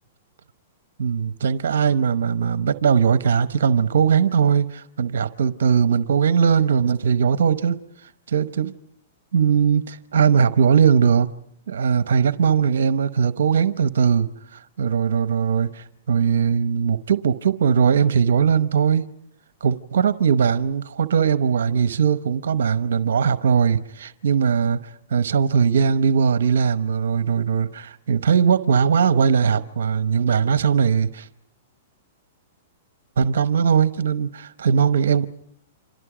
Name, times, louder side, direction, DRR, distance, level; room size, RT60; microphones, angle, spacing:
voice 1, 1.0-8.7 9.3-11.3 11.7-19.0 19.6-24.8 25.1-31.3 33.2-35.3, right 7 dB, 80° right, 0.9 m, -20 dB
30.0 x 26.5 x 5.0 m
hypercardioid pair, 140°, 0 cm